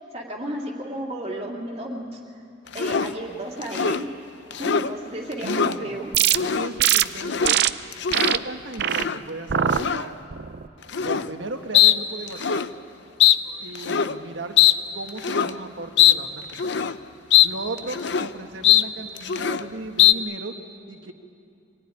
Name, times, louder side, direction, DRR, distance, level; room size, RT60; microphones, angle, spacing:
voice 1, 0.1-2.2 2.7-4.1 4.6-6.2, right 1 dB, 35° right, -2 dB, 2.5 m, -33 dB
sound 1, 2.7-3.1 3.6-4.0 4.5-4.9 5.3-5.8 6.3-6.7 7.1-7.6 7.9-8.4 8.9-9.2 9.7-10.1 10.9-11.3 11.7-12.0 12.3-12.7 13.2-13.4 13.8-14.2 14.6-14.8 15.2-15.5 16.0-16.2 16.5-17.0 17.3-17.5 17.8-18.3 18.6-18.9 19.2-19.6 20.0-20.1, left 10 dB, 65° left, 0.7 m, -20 dB
voice 2, 5.4-6.0 6.3-7.7 8.2-10.2 10.9-12.7 13.6-14.6 14.9-16.9 17.4-20.6 20.9-21.1, right 2 dB, 80° right, 5 dB, 1.6 m, -36 dB
sound 2, 6.1-6.4 6.8-7.0 7.4-7.7 8.1-8.4 8.8-9.0 9.5-9.8 10.3-10.7, right 10 dB, 60° right, 0.6 m, -21 dB
25.0 x 18.5 x 9.9 m, 2.6 s
head